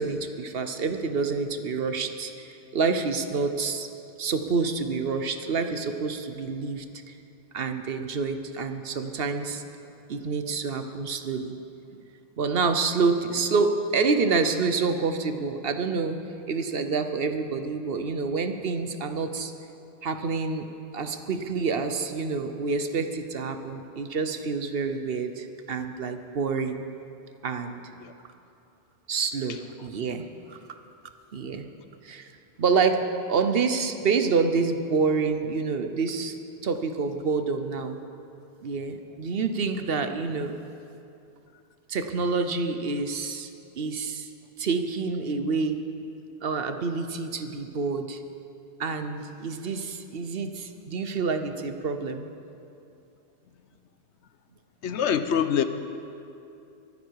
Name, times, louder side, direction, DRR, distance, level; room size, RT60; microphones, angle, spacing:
voice 1, 0.0-3.9 4.2-7.2 7.5-9.6 10.1-11.6 11.9-12.0 12.4-16.2 16.5-19.5 20.0-20.6 20.9-26.8 27.4-27.8 29.1-30.6 31.3-31.7 32.0-32.3 32.6-36.3 36.6-38.0 38.6-40.5 41.9-44.3 44.6-45.8 46.4-48.2 48.8-52.3, right 4 dB, 60° right, 8 dB, 1.0 m, -27 dB
voice 2, 54.8-55.6, left 8 dB, 80° left, 10 dB, 1.0 m, -24 dB
23.0 x 9.6 x 4.7 m, 2.7 s
omnidirectional pair, 1.2 m